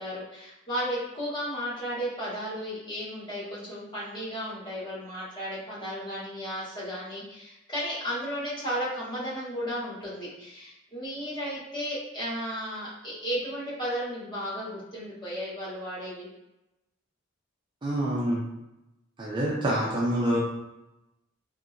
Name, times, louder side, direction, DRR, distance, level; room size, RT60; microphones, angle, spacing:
voice 1, 0.0-16.3, equal, 20° left, -9 dB, 0.9 m, -34 dB
voice 2, 17.8-18.4 19.2-20.4, right 1 dB, 25° right, -5 dB, 0.4 m, -26 dB
2.8 x 2.8 x 2.5 m, 0.92 s
head